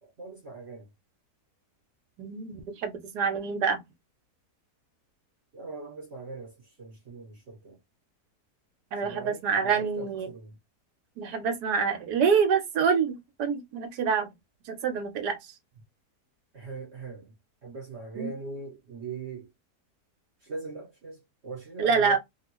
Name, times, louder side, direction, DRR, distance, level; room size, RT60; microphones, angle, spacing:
voice 1, 0.0-0.9 5.5-7.8 9.0-10.6 16.5-17.3 17.6-19.5 20.4-22.2, right 3 dB, 45° right, 1.2 m, -41 dB
voice 2, 2.2-3.8 8.9-10.3 11.2-14.3 14.7-15.4 18.2-18.3 21.8-22.2, right 6 dB, 75° right, 1.3 m, -26 dB
3.3 x 2.4 x 2.9 m
omnidirectional pair, 1.8 m